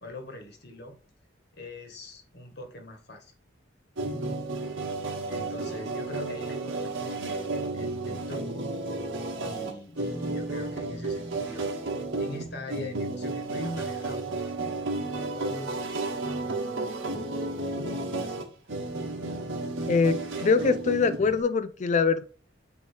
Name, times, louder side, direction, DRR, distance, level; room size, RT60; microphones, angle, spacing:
voice 1, 0.0-1.0 1.5-3.3 4.1-4.4 5.3-8.7 9.4-11.7 12.2-17.5 17.7-18.4, left 1 dB, 55° left, 4 dB, 1.6 m, -42 dB
sound 1, 4.0-21.4, right 2 dB, 85° right, 1.5 m, -32 dB
voice 2, 19.9-22.2, left 5 dB, 40° left, 12 dB, 0.4 m, -23 dB
8.6 x 3.1 x 4.5 m, 0.38 s
head